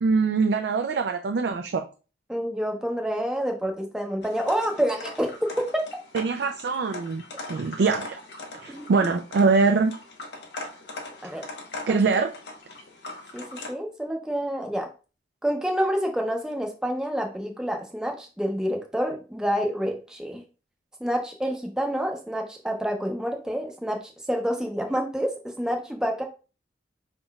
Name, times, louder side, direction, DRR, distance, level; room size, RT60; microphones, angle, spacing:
voice 1, 0.0-1.9 6.1-7.2 7.5-8.2 8.6-9.9 11.9-12.3, right 4 dB, 75° right, 5 dB, 0.4 m, -23 dB
voice 2, 2.3-5.8 8.7-8.9 11.2-11.4 11.9-12.0 13.3-14.9 15.4-20.4 21.0-26.2, equal, 5° right, 2 dB, 0.6 m, -28 dB
sound 1, 4.2-13.7, left 2 dB, 80° left, 0.9 m, -40 dB
5.1 x 3.7 x 2.3 m, 0.34 s
head